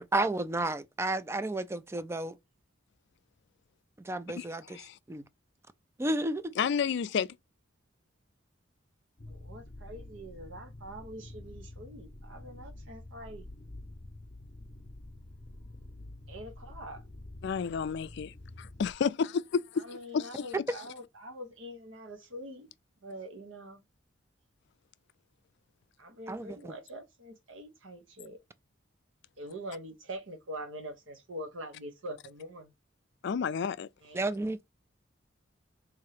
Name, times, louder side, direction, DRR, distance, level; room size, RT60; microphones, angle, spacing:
voice 1, 0.0-2.4 4.0-4.6 5.1-5.2 6.0-6.5 26.3-26.7 34.1-34.6, right 2 dB, 15° right, 0.3 m, -32 dB
voice 2, 4.4-5.0 6.6-7.3 17.4-19.8 20.1-20.5 33.2-33.9, left 6 dB, 60° left, 0.4 m, -31 dB
sound 1, 9.2-18.9, left 1 dB, 40° left, 0.7 m, -48 dB
voice 3, 9.3-13.4 16.3-17.0 19.8-22.7 23.0-23.8 26.0-28.4 29.4-32.7 34.0-34.2, equal, 75° right, 1.0 m, -44 dB
3.6 x 2.9 x 4.8 m
head